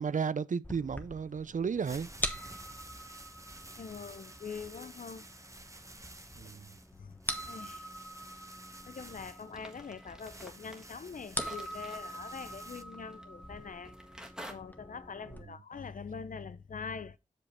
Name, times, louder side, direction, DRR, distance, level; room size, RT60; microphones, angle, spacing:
voice 1, 0.0-2.1 6.3-6.7, right 6 dB, 65° right, 0.4 m, -33 dB
sound 1, 0.6-15.4, equal, 10° left, 1.1 m, -44 dB
sound 2, 1.7-12.8, right 2 dB, 20° right, 0.9 m, -52 dB
voice 2, 3.8-5.3 7.0-7.2 7.5-7.9 8.9-14.0 14.5-17.2, left 5 dB, 70° left, 0.5 m, -44 dB
sound 3, 9.5-14.5, equal, 5° right, 1.6 m, -50 dB
6.5 x 5.3 x 4.1 m
wide cardioid pair, 50°, 14 cm